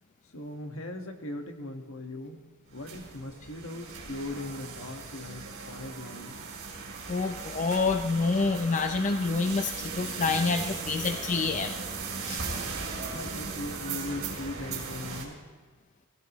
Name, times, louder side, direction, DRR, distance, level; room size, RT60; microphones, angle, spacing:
voice 1, 0.3-2.4 2.7-6.4 12.9-15.4, left 2 dB, 70° left, 4 dB, 1.5 m, -39 dB
sound 1, 2.7-15.3, right 4 dB, 70° right, 3.2 m, -38 dB
voice 2, 7.1-11.8 12.2-12.4, left 4 dB, 35° left, 6 dB, 0.5 m, -27 dB
18.0 x 16.0 x 3.1 m, 1.3 s
head